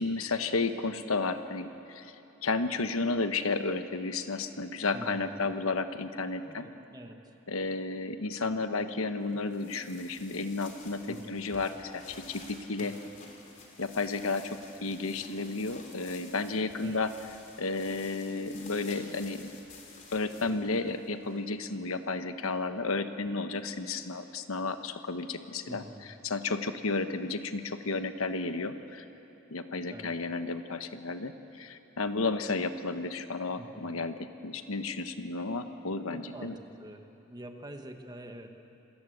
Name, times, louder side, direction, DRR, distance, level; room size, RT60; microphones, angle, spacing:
voice 1, 0.0-2.1 2.4-6.7 7.5-12.9 13.8-17.1 17.6-19.5 20.1-25.8 26.2-29.0 29.5-36.6, left 3 dB, 75° left, 9 dB, 1.1 m, -32 dB
voice 2, 4.9-5.4 6.4-7.2 8.4-8.6 11.1-11.4 12.8-13.1 16.8-17.1 20.4-20.8 25.7-26.1 29.9-30.1 33.6-34.0 36.1-38.5, right 1 dB, 20° right, 5 dB, 1.5 m, -46 dB
sound 1, 9.3-21.8, left 3 dB, 35° left, 3.3 m, -52 dB
27.0 x 18.0 x 8.0 m, 2.9 s
head